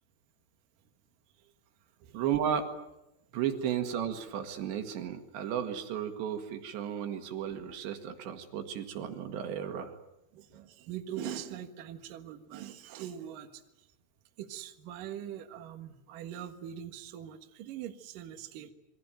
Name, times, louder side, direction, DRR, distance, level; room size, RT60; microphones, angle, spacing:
voice 1, 2.1-2.7 3.3-9.9, right 9 dB, 80° right, 7 dB, 4.1 m, -34 dB
voice 2, 10.3-13.9 14.4-18.7, right 10 dB, 60° right, 6 dB, 2.8 m, -42 dB
27.5 x 23.0 x 9.0 m, 0.93 s
omnidirectional pair, 5.0 m